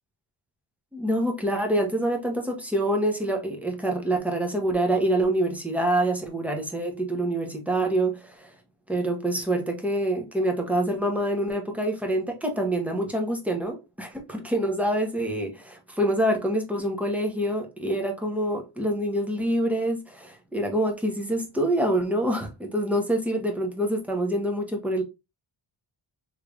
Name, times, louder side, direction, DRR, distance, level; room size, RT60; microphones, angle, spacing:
voice 1, 0.9-8.5 8.9-25.0, right 1 dB, 5° right, 0.8 m, -26 dB
3.3 x 3.2 x 2.4 m
wide cardioid pair, 105°, 50 cm